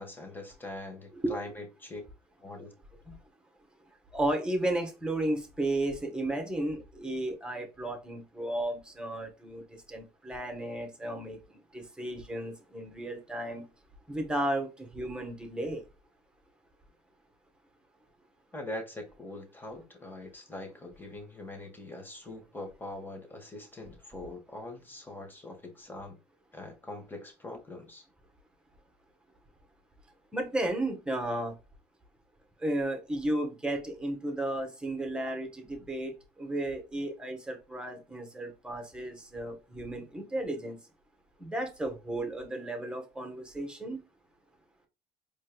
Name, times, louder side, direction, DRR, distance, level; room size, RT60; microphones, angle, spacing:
voice 1, 0.0-2.0 2.4-2.7 3.0-3.1 18.5-26.2 26.5-28.0, left 2 dB, 15° left, 1.7 m, -42 dB
voice 2, 4.1-13.7 14.1-15.8 30.3-31.5 32.6-36.1 36.4-40.8 41.4-44.0, right 1 dB, 5° right, 1.5 m, -33 dB
4.4 x 3.4 x 2.4 m
supercardioid pair, 95°, 13 cm